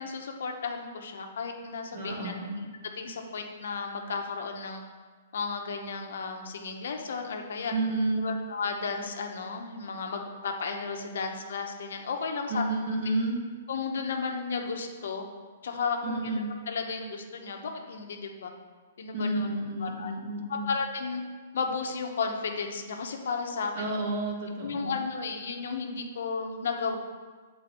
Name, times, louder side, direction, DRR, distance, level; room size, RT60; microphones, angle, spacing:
voice 1, 0.0-2.3 3.0-4.8 5.3-7.7 8.2-12.6 13.7-15.2 15.6-18.5 19.0-19.5 19.8-20.1 20.5-21.2 21.5-23.9 24.6-27.0, left 5 dB, 70° left, 3 dB, 0.9 m, -33 dB
voice 2, 1.9-2.7 7.7-8.3 12.5-13.4 16.0-16.5 19.1-20.7 23.7-25.0, right 2 dB, 45° right, -1 dB, 1.5 m, -30 dB
8.2 x 3.9 x 4.4 m, 1.5 s
hypercardioid pair, 170°, 0 cm